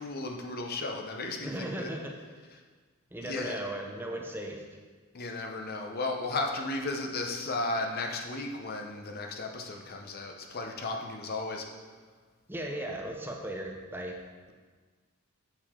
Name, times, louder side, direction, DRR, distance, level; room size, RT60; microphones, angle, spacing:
voice 1, 0.0-1.9 3.2-3.6 5.1-11.7, left 2 dB, 45° left, 2 dB, 0.7 m, -34 dB
voice 2, 1.4-2.1 3.1-4.7 12.5-14.2, right 1 dB, 10° right, 1 dB, 0.6 m, -37 dB
7.4 x 6.8 x 3.7 m, 1.4 s
head